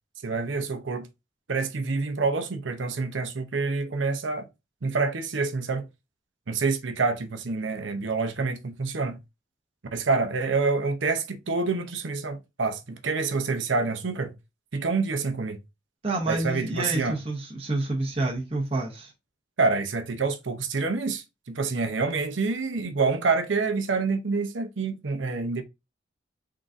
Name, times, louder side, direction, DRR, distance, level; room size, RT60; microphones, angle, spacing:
voice 1, 0.2-1.1 1.5-4.5 4.8-5.8 6.5-9.2 9.9-14.3 14.7-15.6 16.3-17.2 19.6-25.6, right 4 dB, 80° right, 0.7 m, -27 dB
voice 2, 16.0-19.1, right 2 dB, 30° right, 0.9 m, -28 dB
3.9 x 3.7 x 2.6 m
head